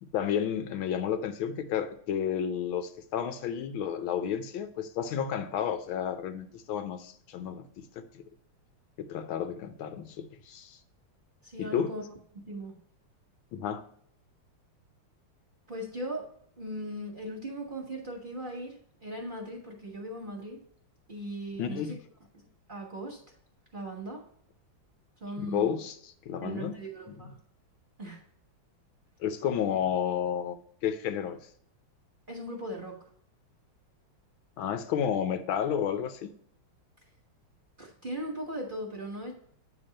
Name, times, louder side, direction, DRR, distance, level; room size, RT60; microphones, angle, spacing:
voice 1, 0.0-7.6 8.0-8.2 9.0-10.8 11.6-11.9 13.5-13.8 21.6-22.0 25.4-26.8 27.1-27.2 29.2-30.6 30.8-31.4 34.6-36.3, left 8 dB, 75° left, 9 dB, 1.4 m, -31 dB
voice 2, 11.4-12.0 12.3-12.8 15.7-16.3 16.6-20.6 21.1-22.0 22.3-23.2 23.7-24.2 25.2-25.8 26.4-27.4 28.0-28.2 32.3-33.0 37.8-39.3, right 1 dB, 30° right, -1 dB, 1.2 m, -38 dB
8.9 x 3.5 x 5.1 m, 0.64 s
omnidirectional pair, 2.3 m